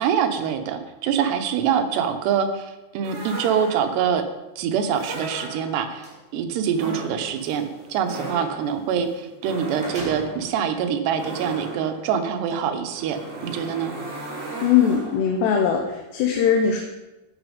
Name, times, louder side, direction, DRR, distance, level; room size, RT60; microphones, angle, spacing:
voice 1, 0.0-4.2 4.6-6.1 6.3-13.9, right 7 dB, 80° right, 7 dB, 3.0 m, -25 dB
sound 1, 3.0-4.1 4.9-6.0 6.7-15.4, right 1 dB, 40° right, 2.8 m, -37 dB
sound 2, 5.4-6.2 9.1-9.2 9.5-10.6 11.3-11.4 12.3-12.5, right 1 dB, ahead, 3.8 m, -39 dB
voice 2, 14.6-16.8, left 7 dB, 80° left, 1 dB, 3.2 m, -20 dB
12.5 x 8.9 x 5.2 m, 1.0 s
omnidirectional pair, 4.9 m